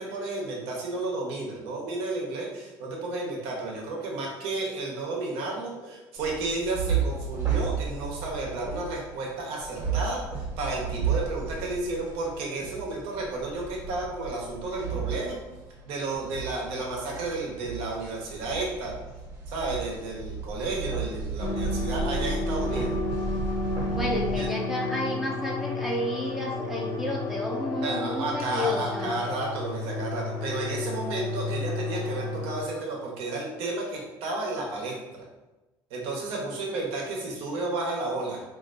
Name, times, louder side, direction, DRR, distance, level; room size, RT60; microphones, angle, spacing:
voice 1, 0.0-15.4 15.8-18.9 19.5-22.9 24.3-24.5 27.8-35.2 35.9-38.4, right 2 dB, 75° right, -2 dB, 1.0 m, -32 dB
sound 1, 6.2-24.5, right 5 dB, 35° right, 1.1 m, -33 dB
sound 2, 21.4-32.6, left 3 dB, 50° left, 0.8 m, -32 dB
voice 2, 23.9-29.2, left 1 dB, 5° right, -3 dB, 0.6 m, -31 dB
4.3 x 2.7 x 2.5 m, 1.1 s
supercardioid pair, 90°, 10 cm